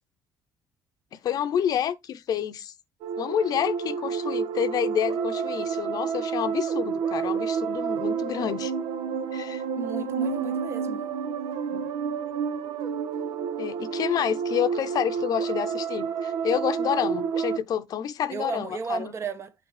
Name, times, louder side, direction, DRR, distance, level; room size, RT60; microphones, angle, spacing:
voice 1, 1.1-2.7 3.2-8.7 9.3-9.6 11.7-11.9 13.6-19.1, left 9 dB, 50° left, 0.7 m, -28 dB
sound 1, 3.0-17.6, right 6 dB, 85° right, 1.2 m, -29 dB
voice 2, 9.8-11.0 18.3-19.5, right 5 dB, 35° right, 0.8 m, -33 dB
8.8 x 3.1 x 4.9 m
cardioid pair, 140°, 8 cm